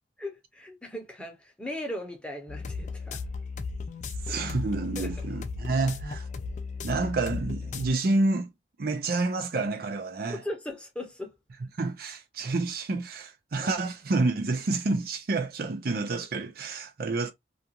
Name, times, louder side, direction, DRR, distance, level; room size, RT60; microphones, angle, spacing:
voice 1, 0.2-3.2 4.3-4.4 5.0-5.1 10.3-11.4 13.6-13.7, left 1 dB, 5° left, 0.8 m, -38 dB
sound 1, 2.5-7.9, left 4 dB, 45° left, 0.4 m, -35 dB
voice 2, 4.2-6.3 6.8-8.5 8.8-10.4 11.7-17.3, right 3 dB, 55° right, 0.5 m, -29 dB
2.5 x 2.4 x 2.7 m
head